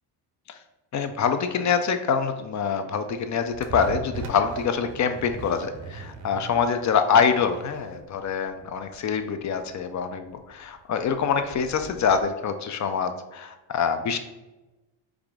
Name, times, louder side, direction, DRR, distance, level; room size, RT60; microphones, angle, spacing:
voice 1, 0.9-14.2, left 6 dB, 40° left, 8 dB, 0.4 m, -25 dB
sound 1, 3.0-12.3, right 4 dB, 40° right, 0.6 m, -40 dB
4.9 x 2.5 x 3.5 m, 1.0 s
cardioid pair, 95°, 49 cm